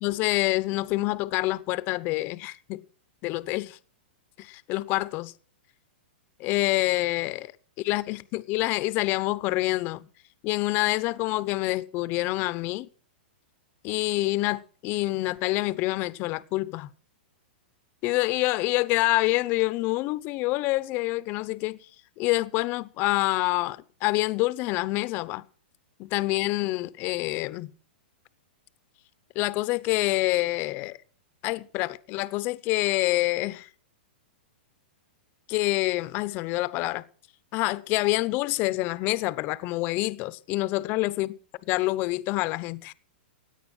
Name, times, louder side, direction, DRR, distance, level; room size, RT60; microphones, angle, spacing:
voice 1, 0.0-2.8 3.2-3.8 4.4-5.3 6.4-7.5 7.8-10.1 10.4-12.9 13.8-16.9 18.0-21.8 22.2-25.4 26.0-27.7 29.3-31.0 31.4-33.7 35.5-37.0 37.5-41.3 41.7-42.9, left 20 dB, 35° left, 0.7 m, -27 dB
16.5 x 9.3 x 6.1 m
hypercardioid pair, 140°, 6 cm